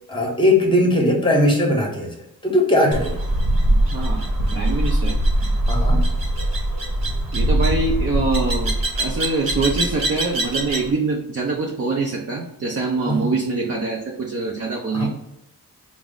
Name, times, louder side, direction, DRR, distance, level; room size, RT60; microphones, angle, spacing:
voice 1, 0.1-2.1 2.4-3.2 5.7-6.0 13.0-13.3 14.9-15.1, left 1 dB, 15° left, 0 dB, 0.9 m, -19 dB
sound 1, 2.9-10.9, right 1 dB, 70° right, 1.0 m, -21 dB
voice 2, 3.7-5.2 7.3-15.1, right 3 dB, 40° right, -1 dB, 0.6 m, -24 dB
4.5 x 2.0 x 3.7 m, 0.88 s
wide cardioid pair, 145°, 36 cm